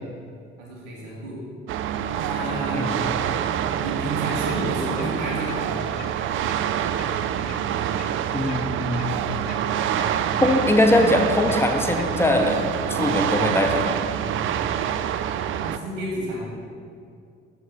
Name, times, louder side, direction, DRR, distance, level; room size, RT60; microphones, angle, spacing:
voice 1, 0.6-1.4 2.1-2.9 3.7-5.8 15.6-16.4, right 1 dB, 65° right, -3 dB, 1.9 m, -31 dB
sound 1, 1.7-15.8, right 9 dB, 40° right, 0.4 m, -26 dB
sound 2, 4.4-4.6 4.9-5.1 5.4-5.6 5.9-6.1 6.4-6.6 6.9-7.1 7.4-7.6 7.9-8.1 8.4-8.6 8.9-9.1 9.4-9.6 9.9-10.1 10.4-10.6 10.9-11.1 11.4-11.6 11.9-12.1, left 10 dB, 60° left, 0.7 m, -41 dB
voice 2, 8.3-9.1 10.4-14.0, left 1 dB, 5° left, 3 dB, 0.8 m, -21 dB
6.6 x 4.8 x 6.5 m, 2.3 s
figure-of-eight pair, 45°, 35 cm